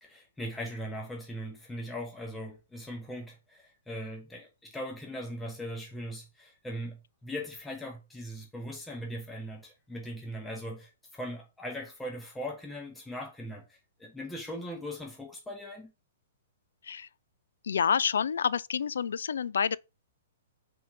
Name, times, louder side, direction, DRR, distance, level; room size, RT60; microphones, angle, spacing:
voice 1, 0.0-15.9, equal, 5° left, 1.1 m, -40 dB
voice 2, 17.6-19.8, left 7 dB, 65° left, 0.3 m, -28 dB
5.0 x 3.7 x 5.1 m
figure-of-eight pair, 115°, 0 cm